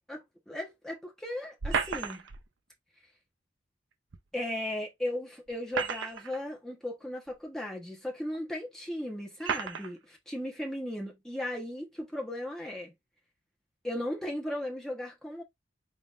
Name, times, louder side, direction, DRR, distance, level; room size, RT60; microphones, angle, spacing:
voice 1, 0.1-2.3 4.3-12.9 13.8-15.4, left 1 dB, ahead, 1.0 m, -36 dB
sound 1, 1.6-2.4 4.1-4.2 5.5-6.4 7.3-7.4 8.3-8.4 9.4-9.9, right 5 dB, 75° right, 0.6 m, -32 dB
3.9 x 3.5 x 2.5 m
head